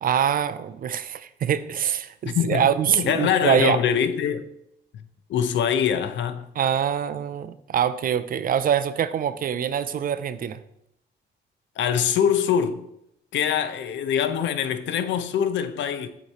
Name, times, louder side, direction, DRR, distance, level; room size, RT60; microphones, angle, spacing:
voice 1, 0.0-3.8 6.6-10.6, right 9 dB, 45° right, 0.4 m, -24 dB
voice 2, 2.2-4.5 5.3-6.5 11.8-12.9 13.3-16.1, left 8 dB, 70° left, 0.6 m, -24 dB
8.0 x 3.0 x 4.1 m
cardioid pair, 90°, 20 cm